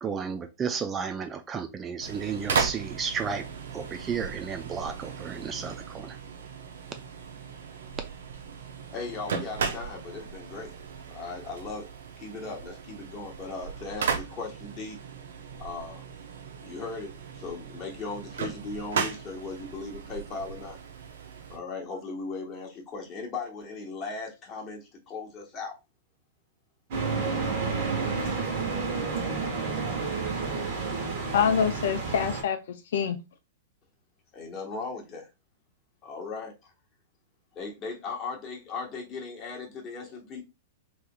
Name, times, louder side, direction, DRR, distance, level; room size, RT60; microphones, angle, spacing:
voice 1, 0.0-3.4 3.7-6.1, right 6 dB, 20° right, 0.4 m, -33 dB
sound 1, 2.0-21.6, right 6 dB, 70° right, 0.7 m, -36 dB
voice 2, 8.9-10.8 11.1-11.9 12.2-15.0 15.6-16.0 16.6-20.8 21.5-25.7 34.3-35.3 36.0-36.7 37.5-40.4, left 4 dB, 30° left, 1.1 m, -38 dB
sound 2, 26.9-32.4, right 4 dB, 55° right, 1.2 m, -30 dB
voice 3, 31.3-33.2, left 7 dB, 65° left, 0.4 m, -26 dB
3.4 x 2.9 x 2.2 m
hypercardioid pair, 105°, 0 cm